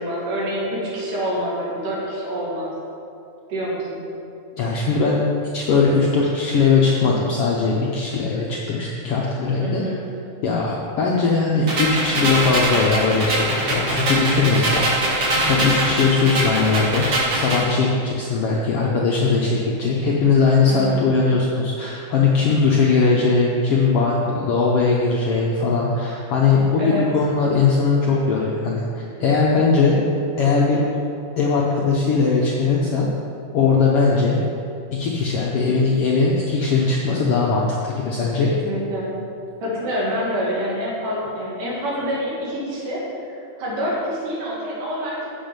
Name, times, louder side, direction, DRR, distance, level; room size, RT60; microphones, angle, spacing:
voice 1, 0.0-2.7 3.5-4.1 9.6-10.0 20.7-21.1 26.8-27.0 38.4-39.2 39.6-45.3, equal, 90° right, -6 dB, 3.7 m, -27 dB
voice 2, 4.6-5.2 5.5-9.8 10.4-17.1 17.3-30.0 30.4-30.8 31.4-33.1 33.5-34.4 34.9-38.5, left 4 dB, 75° left, -3 dB, 1.3 m, -20 dB
sound 1, 11.7-17.7, right 1 dB, 45° right, 1.9 m, -22 dB
7.9 x 7.4 x 5.2 m, 2.7 s
omnidirectional pair, 3.6 m